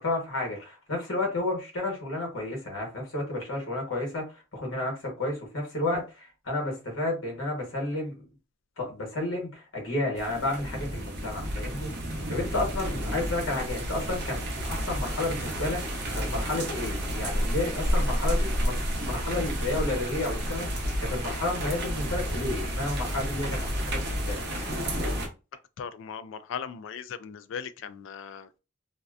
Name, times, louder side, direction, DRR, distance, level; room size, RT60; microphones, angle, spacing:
voice 1, 0.0-8.2 8.8-24.4, left 2 dB, 85° left, 1.1 m, -32 dB
sound 1, 10.1-25.3, equal, 55° right, 0.7 m, -30 dB
voice 2, 25.8-28.5, left 7 dB, 65° left, 0.3 m, -38 dB
2.6 x 2.1 x 2.4 m
head